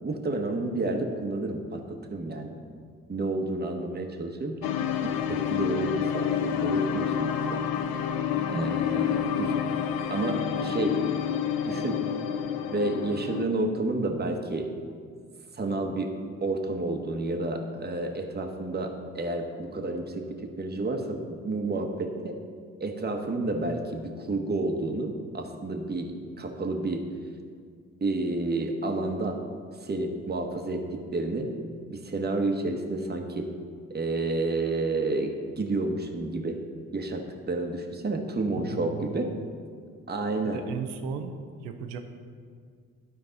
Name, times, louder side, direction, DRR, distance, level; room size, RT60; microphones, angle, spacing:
voice 1, 0.0-2.6 3.1-7.6 8.5-9.5 10.1-11.0 11.6-12.0 12.7-14.7 15.5-16.1 16.4-22.4 22.8-26.1 26.4-27.0 28.0-29.4 29.8-31.5 31.9-33.5 33.9-36.6 36.9-39.3 40.1-40.6, right 2 dB, 25° right, 4 dB, 1.1 m, -30 dB
sound 1, 4.6-13.4, left 8 dB, 70° left, 0.6 m, -28 dB
voice 2, 38.5-39.5 40.4-41.3 41.6-42.0, right 6 dB, 85° right, 7 dB, 0.7 m, -36 dB
12.0 x 4.7 x 3.9 m, 2.1 s
hypercardioid pair, 50°, 37 cm